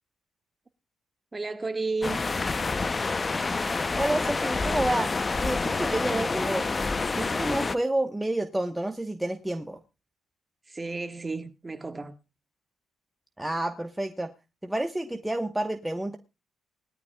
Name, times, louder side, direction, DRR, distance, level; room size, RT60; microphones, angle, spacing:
voice 1, 1.3-2.2 10.6-12.2, right 3 dB, 25° right, 1.5 m, -32 dB
sound 1, 2.0-7.8, left 3 dB, 30° left, 0.6 m, -28 dB
voice 2, 4.0-5.1 5.4-6.7 7.2-9.8 13.4-14.3 14.6-16.2, right 1 dB, 10° right, 1.1 m, -29 dB
20.0 x 13.0 x 2.3 m
cardioid pair, 90°, 0 cm